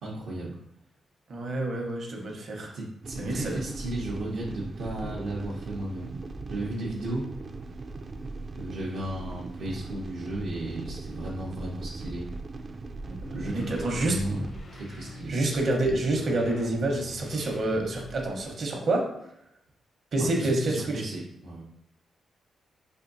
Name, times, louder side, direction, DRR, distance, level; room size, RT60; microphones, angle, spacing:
voice 1, 0.0-0.5 2.7-6.2 6.5-7.3 8.6-12.3 13.3-14.5 14.7-15.3 20.2-21.6, right 1 dB, 85° right, -6 dB, 0.7 m, -34 dB
voice 2, 1.3-2.7 3.2-3.6 13.4-14.2 15.3-19.0 20.1-20.7, right 2 dB, 55° right, 1 dB, 0.9 m, -27 dB
sound 1, 3.0-14.6, right 3 dB, 40° right, 0.3 m, -39 dB
sound 2, 13.1-18.5, left 1 dB, 50° left, 0.6 m, -44 dB
4.3 x 2.6 x 2.6 m, 0.77 s
cardioid pair, 95°, 0 cm